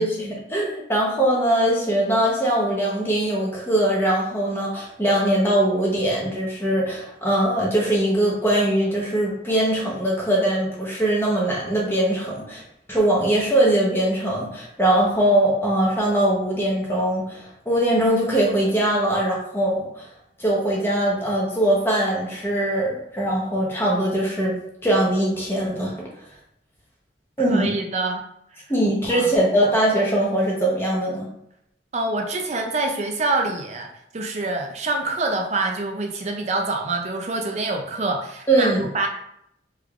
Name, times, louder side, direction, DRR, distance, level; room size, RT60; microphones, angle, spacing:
voice 1, 0.0-12.6 12.9-20.1 20.4-24.6 24.8-26.0 27.4-27.7 28.7-31.3 38.5-38.9, right 1 dB, 10° left, -4 dB, 0.8 m, -21 dB
voice 2, 27.4-28.2 29.1-29.3 31.9-39.1, right 2 dB, 35° right, 3 dB, 0.4 m, -26 dB
3.3 x 3.3 x 2.4 m, 0.77 s
head